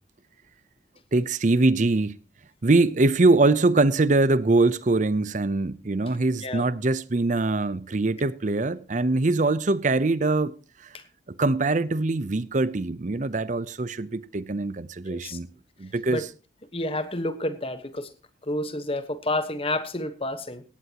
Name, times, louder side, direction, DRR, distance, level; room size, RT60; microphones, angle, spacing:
voice 1, 1.1-2.2 2.6-10.5 11.4-15.5 15.8-16.2, right 2 dB, 45° right, 0.6 m, -23 dB
voice 2, 15.1-15.4 16.1-16.2 16.7-18.1 18.4-20.6, left 1 dB, 30° left, 1.2 m, -29 dB
17.5 x 16.0 x 2.9 m
head